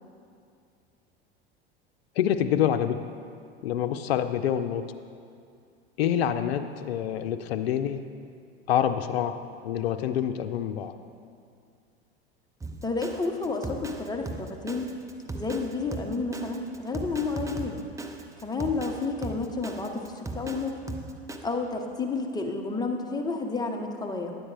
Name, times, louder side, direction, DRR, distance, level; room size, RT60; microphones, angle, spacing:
voice 1, 2.2-3.1 3.6-4.8 6.0-8.0 8.7-11.0, left 9 dB, 80° left, 8 dB, 0.5 m, -27 dB
Drum kit, 12.6-21.4, right 2 dB, 10° right, 0.7 m, -38 dB
voice 2, 12.8-14.9 15.3-17.8 18.4-20.8 21.4-24.4, left 3 dB, 15° left, 2 dB, 1.0 m, -31 dB
10.5 x 8.5 x 3.4 m, 2.3 s
hypercardioid pair, 85°, 31 cm